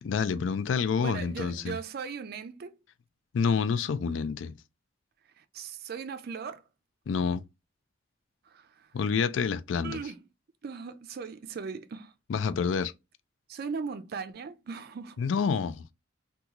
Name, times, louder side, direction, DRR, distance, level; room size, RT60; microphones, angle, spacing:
voice 1, 0.0-1.8 3.3-4.5 7.1-7.4 8.9-10.0 12.3-12.9 15.2-15.8, left 6 dB, 75° left, 0.4 m, -28 dB
voice 2, 1.0-2.7 5.4-6.6 8.5-8.9 9.8-10.2 10.6-12.1 13.5-15.2, right 5 dB, 55° right, 0.4 m, -38 dB
2.9 x 2.3 x 3.6 m
head